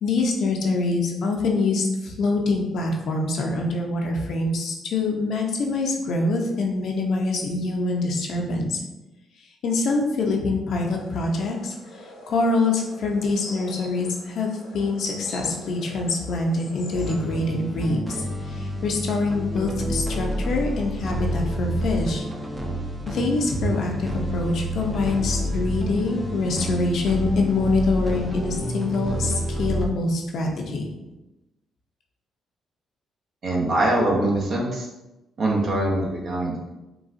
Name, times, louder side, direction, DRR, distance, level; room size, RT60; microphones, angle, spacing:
voice 1, 0.0-8.8 9.6-18.0 18.4-22.3 23.1-30.9, left 3 dB, 65° left, 1 dB, 0.6 m, -25 dB
sound 1, 10.7-17.2, left 2 dB, 85° left, 1.0 m, -43 dB
sound 2, 16.9-29.9, equal, 15° right, 0.5 m, -29 dB
voice 2, 33.4-34.9 35.4-36.7, right 1 dB, 55° right, -3 dB, 0.7 m, -23 dB
3.8 x 2.3 x 2.5 m, 0.99 s
cardioid pair, 90°, 0 cm